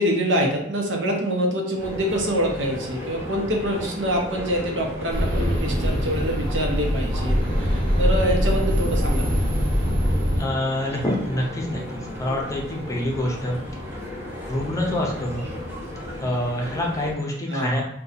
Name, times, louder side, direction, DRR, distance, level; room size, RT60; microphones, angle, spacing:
voice 1, 0.0-9.4 17.5-17.8, equal, 80° right, 0 dB, 0.8 m, -25 dB
sound 1, 1.8-17.1, left 1 dB, 10° right, 1.0 m, -35 dB
sound 2, 5.1-10.4, equal, 50° right, 1.0 m, -22 dB
voice 2, 10.4-13.6 14.4-15.5 16.2-17.8, left 1 dB, 15° left, -1 dB, 0.6 m, -26 dB
2.7 x 2.3 x 3.9 m, 0.79 s
head